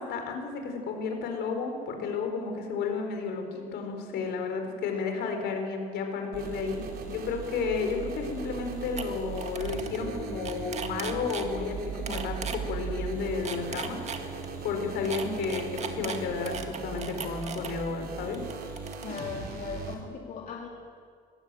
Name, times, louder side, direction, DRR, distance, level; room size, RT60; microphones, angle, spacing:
voice 1, 0.0-6.8 7.1-14.0 14.6-18.4, left 5 dB, 75° left, 4 dB, 4.3 m, -32 dB
sound 1, 6.3-19.9, right 5 dB, 65° right, 3.3 m, -38 dB
sound 2, 8.6-8.7 9.0-9.1 9.4-10.0 10.3-11.5 12.1-12.6 13.3-14.5 15.1-17.7 18.3-19.2, right 6 dB, 40° right, 2.0 m, -37 dB
voice 2, 19.0-20.7, left 6 dB, 55° left, 0 dB, 2.5 m, -38 dB
21.0 x 16.0 x 9.1 m, 2.1 s
cardioid pair, 110°, 17 cm